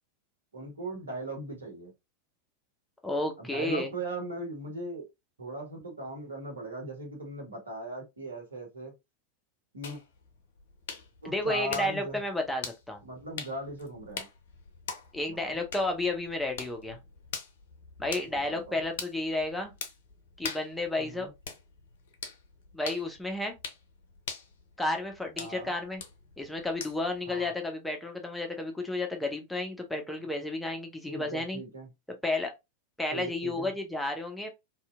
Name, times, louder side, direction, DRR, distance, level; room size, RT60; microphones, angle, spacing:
voice 1, 0.5-1.9 3.4-5.0 5.4-8.9 9.7-10.0 11.2-12.2 13.0-14.3 15.3-15.6 18.3-18.8 21.0-21.3 25.3-25.7 27.3-27.5 31.1-31.9 33.1-33.7, right 1 dB, 75° right, 0.9 m, -38 dB
voice 2, 3.0-3.9 11.2-13.0 15.1-17.0 18.0-19.7 20.4-21.3 22.7-23.6 24.8-26.0 26.4-31.6 32.1-32.5 33.0-34.5, left 2 dB, 5° left, 0.5 m, -32 dB
sound 1, 9.8-27.2, left 5 dB, 60° left, 0.4 m, -44 dB
2.7 x 2.0 x 2.3 m
figure-of-eight pair, 90°, 0 cm